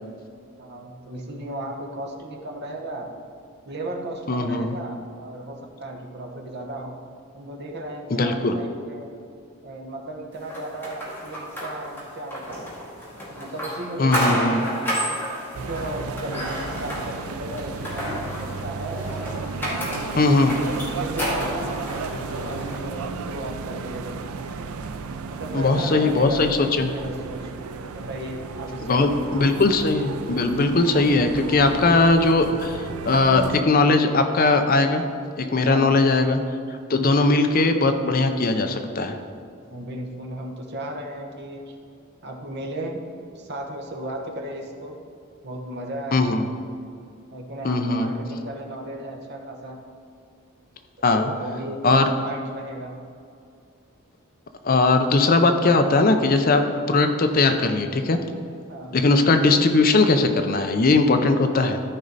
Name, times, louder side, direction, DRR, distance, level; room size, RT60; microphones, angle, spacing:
voice 1, 0.6-3.1 3.6-7.0 7.3-9.1 9.6-12.7 13.4-15.2 15.7-19.1 20.1-20.4 21.0-21.5 22.1-24.2 25.3-27.5 27.9-29.3 35.6-36.0 38.6-38.7 39.7-41.8 42.2-43.1 43.3-45.0 45.4-46.4 47.3-49.8 51.0-53.0 58.7-59.0, right 1 dB, 50° right, 2 dB, 1.1 m, -35 dB
voice 2, 4.3-4.7 8.1-8.6 14.0-14.6 20.2-20.6 25.5-26.9 28.8-35.0 35.4-36.4 36.9-39.2 46.1-46.5 47.6-48.1 51.0-51.3 51.8-52.1 54.6-58.2 58.9-61.8, left 3 dB, 40° left, 7 dB, 0.6 m, -19 dB
sound 1, 10.5-22.8, equal, 10° left, 2.3 m, -31 dB
sound 2, 15.5-33.6, right 4 dB, 90° right, 0.5 m, -34 dB
13.5 x 5.3 x 4.0 m, 2.4 s
head